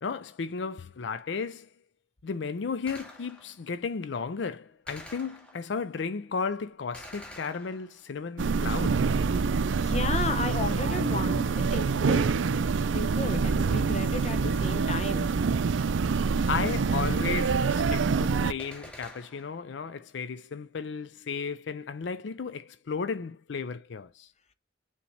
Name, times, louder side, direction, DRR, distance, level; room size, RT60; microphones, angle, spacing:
voice 1, 0.0-1.7 2.2-9.0 16.5-24.3, left 5 dB, 70° left, 0.5 m, -34 dB
Gunshot gunfire, 2.9-3.7 4.9-5.8 6.9-8.2 18.6-19.7, left 1 dB, 5° left, 2.5 m, -48 dB
sound 1, 8.4-18.5, right 5 dB, 80° right, 0.5 m, -26 dB
voice 2, 9.8-12.2 12.5-12.6 12.9-15.3, left 3 dB, 35° left, 0.8 m, -34 dB
7.0 x 3.0 x 4.5 m
head